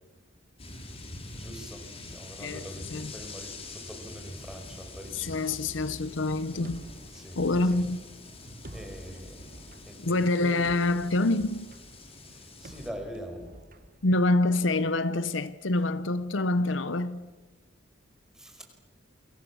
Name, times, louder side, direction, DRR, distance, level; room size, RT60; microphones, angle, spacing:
sound 1, 0.6-12.9, left 2 dB, 30° left, 3.7 m, -45 dB
voice 1, 1.3-5.4 7.1-7.4 7.7-7.8 8.7-10.6 12.3-13.4 18.4-18.6, equal, 5° right, 5.2 m, -43 dB
voice 2, 2.4-3.1 5.1-6.8 7.3-8.0 10.0-11.7 14.0-17.3, left 2 dB, 75° left, 0.9 m, -26 dB
sound 2, 6.6-14.6, right 1 dB, 50° right, 1.6 m, -50 dB
29.5 x 23.5 x 7.2 m
head